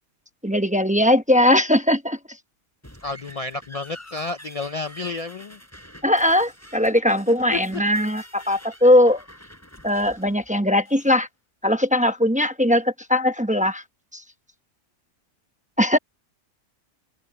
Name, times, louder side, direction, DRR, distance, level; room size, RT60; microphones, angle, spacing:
voice 1, 0.4-2.2 6.0-9.2 9.8-11.3 11.6-13.8 14.1-14.2 15.8-16.0, left 1 dB, 5° right, 0.7 m, -19 dB
sound 1, 2.8-11.2, equal, 10° left, 4.2 m, -47 dB
voice 2, 3.0-5.6 7.4-7.8, left 3 dB, 65° left, 0.3 m, -31 dB
open air
omnidirectional pair, 1.3 m